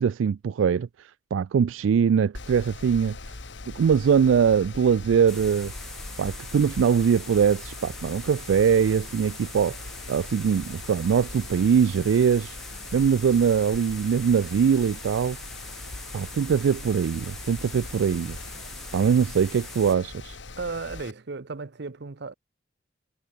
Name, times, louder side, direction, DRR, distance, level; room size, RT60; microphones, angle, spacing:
voice 1, 0.0-3.4 3.7-5.7 6.2-9.8 10.1-12.6 12.9-15.4 16.1-18.4 18.9-20.4, right 7 dB, 75° right, 0.3 m, -22 dB
Mechanical fan, 2.3-21.1, left 3 dB, 60° left, 1.3 m, -41 dB
sound 1, 5.3-20.0, left 1 dB, ahead, 5.5 m, -43 dB
voice 2, 20.6-22.3, right 4 dB, 55° right, 0.8 m, -35 dB
head